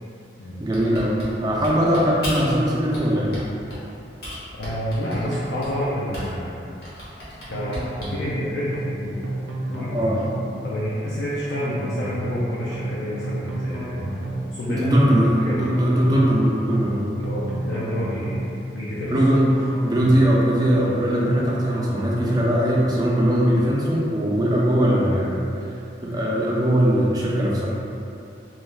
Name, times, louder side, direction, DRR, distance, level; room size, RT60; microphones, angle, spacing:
voice 1, 0.6-1.1 1.4-3.3 9.9-10.2 14.7-17.1 19.1-25.8 26.0-27.7, equal, 20° right, -4 dB, 0.3 m, -20 dB
Typing, 0.7-2.6 2.9-3.9 4.2-6.5 6.8-8.2, equal, 55° left, 0.8 m, -35 dB
voice 2, 4.6-6.7 7.5-9.2 9.7-9.9 10.6-14.1 14.5-15.1 15.4-15.7 17.2-18.4 18.7-19.1 25.1-25.2, equal, 75° left, -7 dB, 0.4 m, -29 dB
sound 1, 7.5-8.4 8.7-9.0 9.2-10.5 11.5-12.4 12.7-13.0 13.2-14.5 15.5-16.4 16.7-17.0 17.2-18.5 19.5-20.4 20.7-21.0 21.2-22.5, right 1 dB, 90° right, 0.4 m, -31 dB
2.3 x 2.0 x 3.1 m, 2.7 s
head